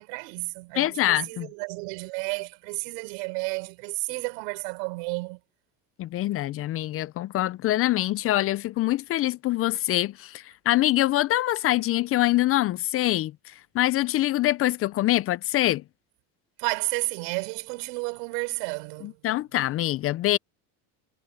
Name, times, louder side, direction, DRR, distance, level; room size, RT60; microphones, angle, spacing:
voice 1, 0.0-5.4 16.6-19.2, right 30 dB, 75° right, 4.6 m, -32 dB
voice 2, 0.8-1.5 6.0-15.8 19.2-20.4, left 15 dB, 30° left, 0.3 m, -24 dB
supercardioid pair, 115°, 48 cm